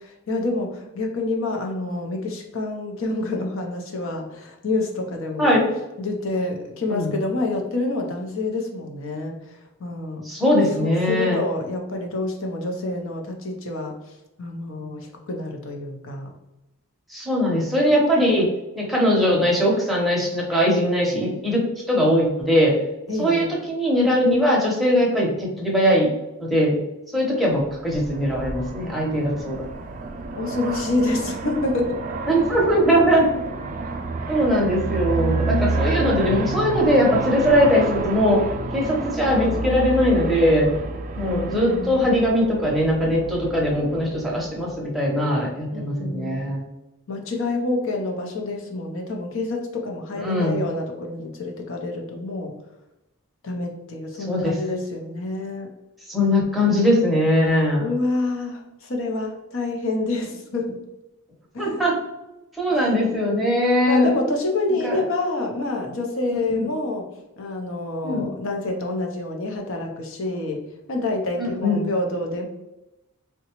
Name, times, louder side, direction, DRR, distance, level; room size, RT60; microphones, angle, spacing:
voice 1, 0.0-5.6 6.0-10.3 10.8-13.9 14.4-16.4 23.1-23.5 30.4-32.0 35.4-35.9 41.2-42.0 45.7-46.4 47.1-52.5 53.4-55.7 57.8-60.8 61.5-61.9 62.7-62.9 63.9-67.1 67.4-70.6 70.9-72.5, left 2 dB, 65° left, 3 dB, 0.6 m, -27 dB
voice 2, 10.2-11.4 17.1-18.5 18.7-22.7 23.2-26.1 26.4-26.8 27.1-29.6 32.3-33.2 34.3-38.4 38.7-40.7 41.2-46.7 50.2-50.6 54.3-54.6 56.1-57.9 61.6-61.9 62.6-64.1 64.8-65.0 66.5-66.7 68.0-68.3 71.4-71.8, equal, ahead, -4 dB, 0.7 m, -20 dB
Aircraft, 27.7-44.9, right 3 dB, 35° right, 0.3 m, -30 dB
3.8 x 2.2 x 2.9 m, 0.95 s
head